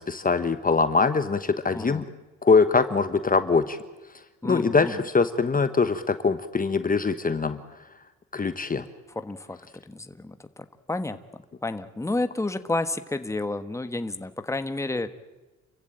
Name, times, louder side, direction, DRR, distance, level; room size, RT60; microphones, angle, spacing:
voice 1, 0.0-2.0 2.4-3.8 4.4-7.6 8.3-8.8, left 4 dB, 30° left, 10 dB, 1.2 m, -23 dB
voice 2, 1.7-2.0 4.4-5.0 9.1-9.6 9.9-11.2 11.6-15.1, left 2 dB, 10° left, 9 dB, 1.3 m, -30 dB
29.0 x 15.5 x 8.9 m, 1.1 s
cardioid pair, 90°, 30 cm